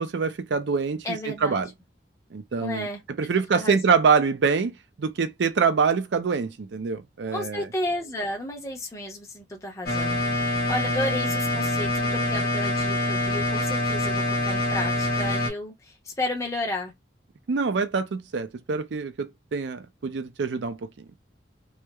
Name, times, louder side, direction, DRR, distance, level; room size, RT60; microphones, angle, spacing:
voice 1, 0.0-1.1 1.4-1.7 2.3-2.9 3.2-7.6 17.5-20.9, right 5 dB, 70° right, 0.4 m, -25 dB
voice 2, 1.0-1.7 2.6-3.0 3.5-4.1 7.3-16.9, left 1 dB, 15° left, 0.7 m, -32 dB
sound 1, 9.9-15.5, left 1 dB, 50° left, 0.9 m, -25 dB
3.1 x 2.0 x 2.2 m
head